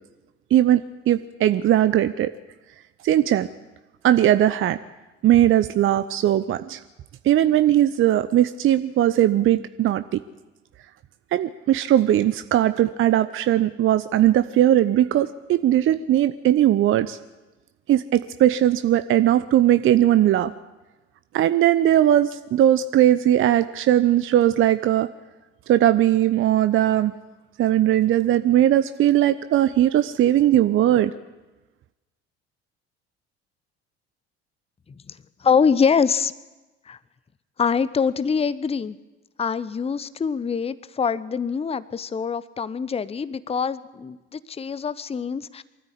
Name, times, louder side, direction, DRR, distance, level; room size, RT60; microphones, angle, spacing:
voice 1, 0.5-2.3 3.0-3.5 4.0-4.8 5.2-6.8 7.2-10.2 11.3-17.2 17.9-20.5 21.3-25.1 25.7-27.1 27.6-31.1, right 12 dB, 40° right, 12 dB, 0.8 m, -19 dB
voice 2, 35.4-36.3 36.9-37.0 37.6-39.0 39.4-45.6, left 6 dB, 20° left, 17 dB, 0.9 m, -24 dB
23.5 x 14.0 x 8.3 m, 1.2 s
figure-of-eight pair, 55°, 33 cm